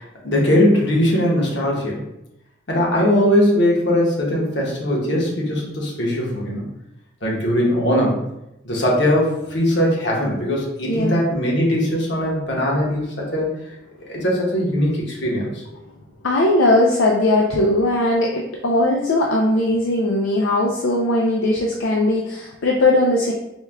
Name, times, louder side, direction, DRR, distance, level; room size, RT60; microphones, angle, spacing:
voice 1, 0.0-2.0 2.7-6.6 7.2-8.2 8.6-13.5 14.1-15.6, equal, 60° left, -3 dB, 1.1 m, -20 dB
voice 2, 10.9-11.2 16.2-23.3, left 1 dB, 80° left, -1 dB, 0.5 m, -19 dB
4.4 x 2.2 x 3.4 m, 0.86 s
head